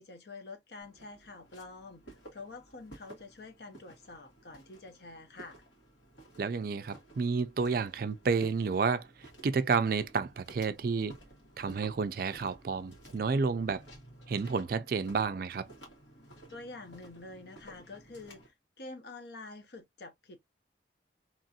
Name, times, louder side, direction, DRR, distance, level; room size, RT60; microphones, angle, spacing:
voice 1, 0.0-5.6 16.5-20.4, left 3 dB, 60° left, 0.8 m, -47 dB
Walk footsteps, 0.8-18.5, right 1 dB, 85° left, 1.7 m, -54 dB
voice 2, 6.4-9.1 9.4-11.2 11.6-13.8 14.3-15.7, right 5 dB, 50° right, 0.3 m, -30 dB
2.9 x 2.5 x 2.7 m
head